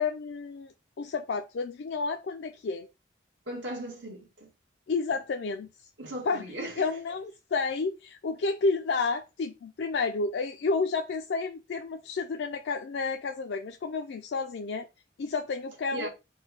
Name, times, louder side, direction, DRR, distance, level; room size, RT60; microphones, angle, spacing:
voice 1, 0.0-2.9 4.9-5.7 6.3-6.4 6.8-14.9 15.2-16.1, left 4 dB, 70° left, 0.4 m, -31 dB
voice 2, 3.5-4.5 6.0-6.9 15.9-16.1, right 1 dB, 80° right, 1.5 m, -37 dB
4.3 x 2.2 x 4.7 m
head